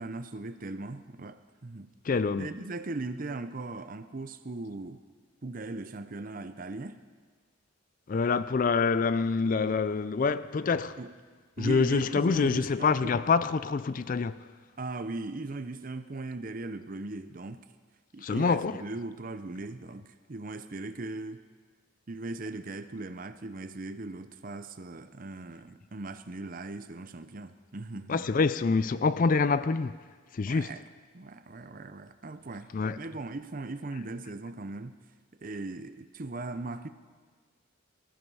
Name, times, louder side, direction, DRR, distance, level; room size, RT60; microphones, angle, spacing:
voice 1, 0.0-1.9 2.4-5.0 5.4-7.0 11.0-11.1 11.6-13.1 14.8-17.6 18.1-21.4 22.1-28.4 30.5-30.8 31.1-34.9 35.4-36.9, right 2 dB, 40° right, 0.7 m, -39 dB
voice 2, 2.0-2.5 8.1-11.0 11.6-14.5 18.2-18.8 28.1-30.0 30.3-30.7 32.7-33.0, left 4 dB, 40° left, 0.4 m, -26 dB
18.5 x 13.0 x 5.5 m
head